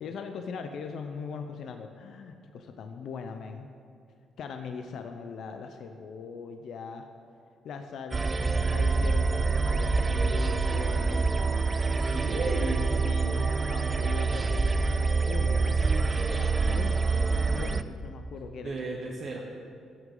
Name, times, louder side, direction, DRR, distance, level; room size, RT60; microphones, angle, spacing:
voice 1, 0.0-3.7 4.4-7.1 7.6-11.8 12.3-12.8 13.0-15.8 16.3-18.7, left 5 dB, 70° left, 6 dB, 0.6 m, -40 dB
sound 1, 8.1-17.8, right 4 dB, 30° right, 0.4 m, -26 dB
voice 2, 11.9-12.9 18.6-19.4, right 3 dB, 50° right, -1 dB, 1.0 m, -34 dB
14.5 x 6.3 x 3.9 m, 2.4 s
cardioid pair, 90°, 0 cm